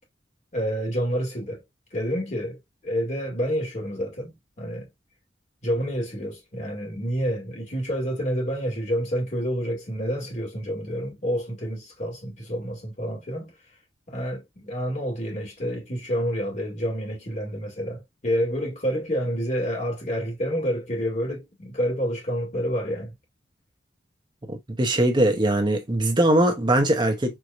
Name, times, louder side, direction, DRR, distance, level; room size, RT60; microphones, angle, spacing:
voice 1, 0.5-1.6 1.9-2.6 2.8-4.9 5.6-13.5 14.1-23.1, equal, 40° left, 2.0 m, -28 dB
voice 2, 24.5-27.4, right 1 dB, 25° right, 1.0 m, -21 dB
4.7 x 2.8 x 2.5 m
head